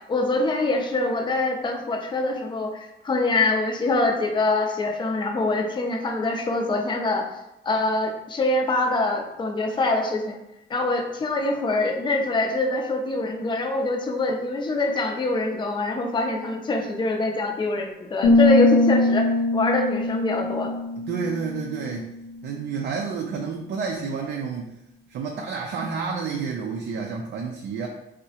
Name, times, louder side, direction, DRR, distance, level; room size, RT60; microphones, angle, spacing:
voice 1, 0.0-7.3 7.6-10.4 10.7-19.3 19.5-20.7, left 2 dB, 25° left, 2 dB, 0.5 m, -24 dB
sound 1, 18.2-21.9, left 2 dB, 85° left, 0.6 m, -21 dB
voice 2, 21.1-22.1 22.4-24.7 25.1-27.9, right 5 dB, 60° right, 1 dB, 0.4 m, -30 dB
3.6 x 2.1 x 2.7 m, 0.87 s
cardioid pair, 90°, 20 cm